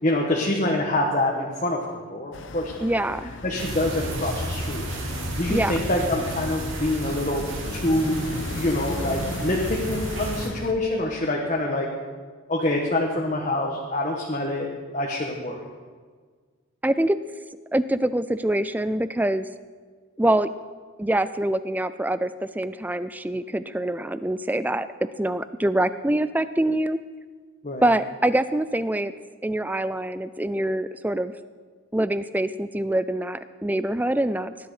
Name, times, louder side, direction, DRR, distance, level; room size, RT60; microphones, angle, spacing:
voice 1, 0.0-2.8 3.4-4.8 5.4-7.4 7.7-8.2 8.5-11.9 12.5-14.7 14.9-15.6 27.6-27.8, left 1 dB, 35° left, -1 dB, 1.3 m, -25 dB
sound 1, 2.3-10.7, left 2 dB, 60° left, 0.8 m, -37 dB
voice 2, 2.8-3.3 5.5-5.7 16.8-17.2 17.7-19.5 20.2-20.5 21.0-24.9 25.2-27.0 27.8-29.1 29.4-31.3 31.9-34.5, right 1 dB, 10° right, 14 dB, 0.4 m, -24 dB
sound 2, 3.6-10.5, right 1 dB, 65° right, 2.6 m, -32 dB
19.0 x 11.0 x 4.9 m, 1.6 s
head